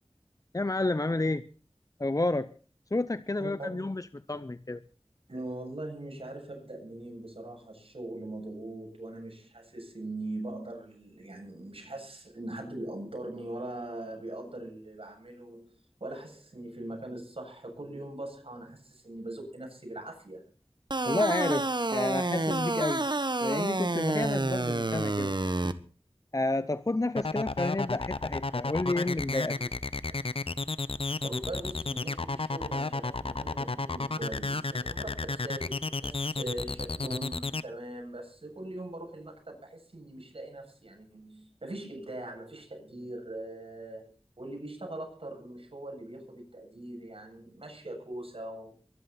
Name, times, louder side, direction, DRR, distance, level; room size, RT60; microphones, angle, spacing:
voice 1, 0.5-1.4 2.0-2.5 2.9-4.8 21.1-23.1 23.4-25.4 26.3-29.6, left 2 dB, 35° left, 0.7 m, -30 dB
voice 2, 3.4-3.9 5.3-20.4 23.5-23.8 30.1-30.2 31.2-48.7, right 1 dB, 70° right, 7.8 m, -41 dB
sound 1, 20.9-25.7, right 2 dB, 50° right, 1.2 m, -29 dB
sound 2, 27.2-37.6, left 3 dB, 70° left, 0.8 m, -32 dB
23.5 x 11.5 x 4.4 m
wide cardioid pair, 40°, 10 cm